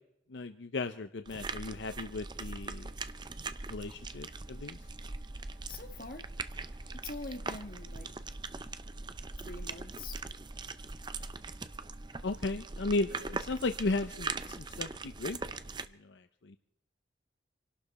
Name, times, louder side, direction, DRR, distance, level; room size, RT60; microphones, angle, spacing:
voice 1, 0.3-2.9 3.7-4.8 12.2-15.4 16.0-16.6, left 2 dB, 75° left, 9 dB, 0.7 m, -35 dB
sound 1, 1.3-15.9, right 3 dB, 25° right, 0.6 m, -41 dB
voice 2, 5.7-6.2 7.0-8.2 9.4-10.2, left 3 dB, 50° left, 6 dB, 1.5 m, -44 dB
26.5 x 12.0 x 4.2 m, 0.80 s
head